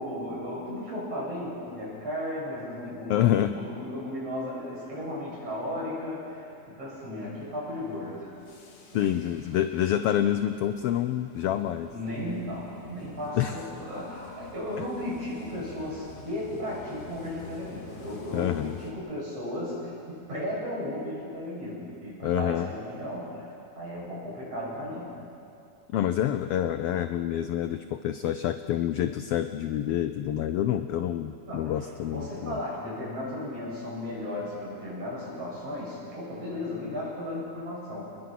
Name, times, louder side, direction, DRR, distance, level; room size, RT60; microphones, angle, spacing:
voice 1, 0.0-8.3 8.9-9.0 11.9-23.5 23.7-25.1 31.5-38.2, left 1 dB, 55° right, -5 dB, 8.8 m, -35 dB
voice 2, 3.1-3.6 8.9-11.9 13.4-13.6 18.3-18.8 22.2-22.7 25.9-32.6, left 11 dB, 85° left, 10 dB, 1.3 m, -27 dB
sound 1, 7.3-18.9, left 3 dB, 55° left, 3.1 m, -48 dB
29.0 x 21.0 x 6.0 m, 2.7 s
omnidirectional pair, 3.4 m